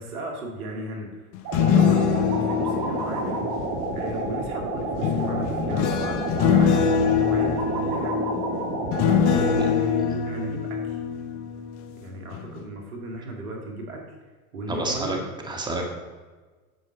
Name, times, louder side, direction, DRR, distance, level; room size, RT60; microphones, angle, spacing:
voice 1, 0.0-3.4 3.9-6.9 7.2-8.2 9.3-11.0 12.0-14.2 14.5-15.2, right 1 dB, 80° right, 1 dB, 2.2 m, -35 dB
sound 1, 1.3-4.2 5.0-11.9 12.3-12.6, left 7 dB, 55° left, 0.9 m, -24 dB
sound 2, 1.4-9.7, right 2 dB, 45° right, 2.0 m, -29 dB
voice 2, 14.7-15.2 15.4-15.9, right 2 dB, 10° right, 0 dB, 1.7 m, -28 dB
9.1 x 7.3 x 3.9 m, 1.3 s
hypercardioid pair, 90°, 43 cm